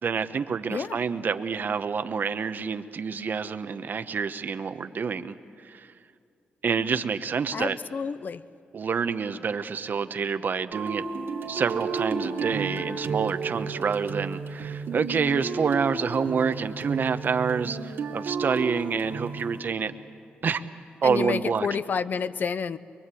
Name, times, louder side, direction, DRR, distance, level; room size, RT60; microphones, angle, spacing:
voice 1, 0.0-5.4 5.6-5.9 6.6-7.8 8.7-11.0 11.5-19.9 20.4-20.6 21.0-21.7, right 6 dB, 55° right, 10 dB, 1.0 m, -27 dB
voice 2, 7.5-8.4 21.0-22.8, left 6 dB, 55° left, 15 dB, 0.7 m, -29 dB
sound 1, 10.7-19.6, right 4 dB, 80° right, 2.5 m, -32 dB
23.5 x 23.5 x 8.4 m, 2.4 s
cardioid pair, 80°, 4 cm